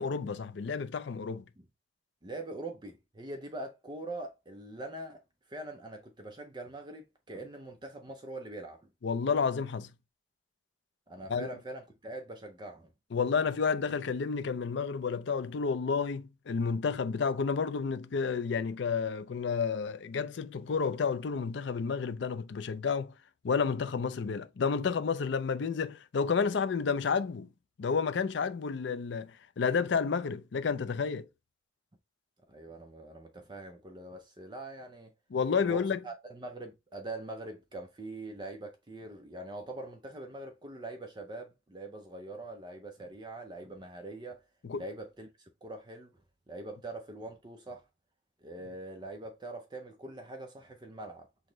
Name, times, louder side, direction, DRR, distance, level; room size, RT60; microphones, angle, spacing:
voice 1, 0.0-1.4 9.0-9.9 11.3-11.5 13.1-23.1 23.4-27.5 27.8-31.3 35.3-36.0 44.6-44.8, left 5 dB, 60° left, 0.4 m, -30 dB
voice 2, 2.2-5.2 5.5-8.9 11.1-12.9 32.5-35.1 35.7-44.4 44.7-46.2 46.5-47.9 48.4-51.3, right 2 dB, 20° right, 0.5 m, -43 dB
6.3 x 2.1 x 3.8 m
head